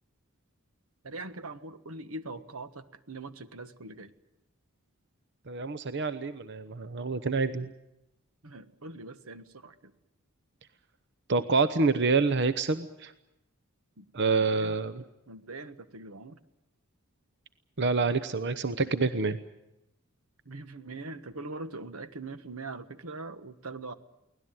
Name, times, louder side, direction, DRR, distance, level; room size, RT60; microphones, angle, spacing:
voice 1, 1.0-4.1 8.4-9.9 14.0-14.1 14.5-14.8 15.3-16.4 20.4-23.9, right 2 dB, 85° right, 11 dB, 1.4 m, -42 dB
voice 2, 5.5-7.7 11.3-13.1 14.1-14.9 17.8-19.4, right 4 dB, 55° right, 11 dB, 0.9 m, -27 dB
24.0 x 18.0 x 9.1 m, 0.88 s
head